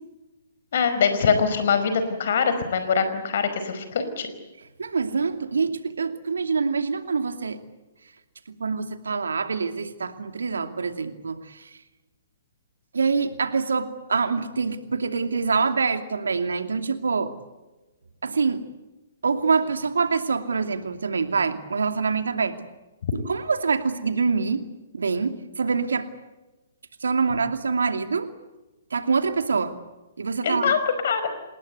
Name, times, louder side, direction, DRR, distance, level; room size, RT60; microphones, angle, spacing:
voice 1, 0.7-4.3 30.4-30.8 31.0-31.3, left 6 dB, 55° left, 10 dB, 5.0 m, -23 dB
voice 2, 4.8-7.6 8.5-11.7 12.9-17.4 18.2-18.6 19.2-22.6 23.3-24.6 24.9-26.1 27.0-28.3 28.9-29.7 30.2-30.7, right 5 dB, 75° right, 8 dB, 2.6 m, -25 dB
27.5 x 20.0 x 8.2 m, 1.1 s
figure-of-eight pair, 125°, 0 cm